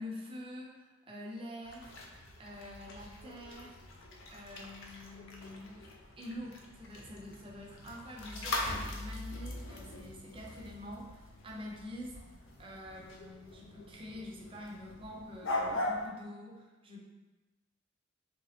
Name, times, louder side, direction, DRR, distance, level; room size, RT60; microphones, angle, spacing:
voice 1, 0.0-1.9 2.4-3.8 4.3-17.0, left 1 dB, 30° right, -1 dB, 0.5 m, -46 dB
sound 1, 1.6-16.1, left 2 dB, 80° left, 0.5 m, -41 dB
3.1 x 2.9 x 3.2 m, 1.2 s
head